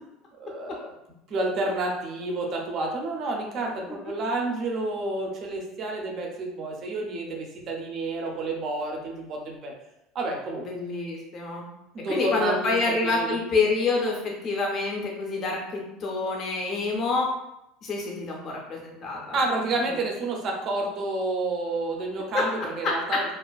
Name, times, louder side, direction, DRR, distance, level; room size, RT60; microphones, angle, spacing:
voice 1, 0.4-0.9 1.3-9.7 10.1-10.6 11.9-12.8 13.0-13.4 19.3-23.2, right 2 dB, 30° right, 0 dB, 0.4 m, -29 dB
voice 2, 10.6-11.6 12.1-17.3 17.8-19.4 19.9-20.0 22.3-22.4, left 3 dB, 30° left, -1 dB, 0.5 m, -27 dB
2.4 x 2.4 x 2.2 m, 0.88 s
cardioid pair, 180°, 0 cm